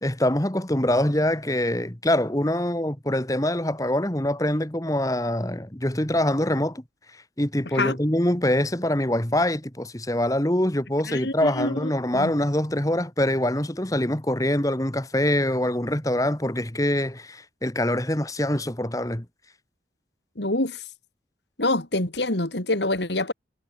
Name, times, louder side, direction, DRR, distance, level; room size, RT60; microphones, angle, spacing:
voice 1, 0.0-6.8 7.1-19.3, left 1 dB, 20° left, 1.8 m, -24 dB
voice 2, 11.1-12.3 20.4-20.8 21.6-23.3, left 2 dB, 80° left, 3.7 m, -26 dB
head